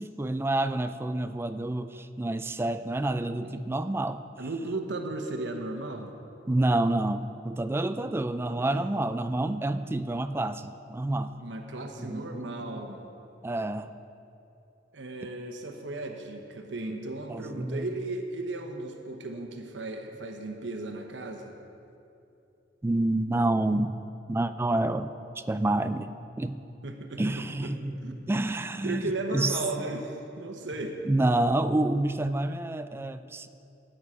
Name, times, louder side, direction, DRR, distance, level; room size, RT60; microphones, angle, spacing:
voice 1, 0.0-4.3 6.5-11.3 12.0-12.8 13.4-13.9 17.3-17.9 22.8-24.0 24.3-25.1 25.4-26.6 27.2-29.6 31.1-33.5, right 2 dB, 15° right, 11 dB, 0.3 m, -28 dB
voice 2, 4.4-6.1 8.4-8.9 11.4-13.0 14.9-21.5 26.8-27.7 28.0-28.2 28.8-31.0, right 2 dB, 70° right, 4 dB, 1.0 m, -36 dB
13.5 x 8.9 x 4.9 m, 2.7 s
head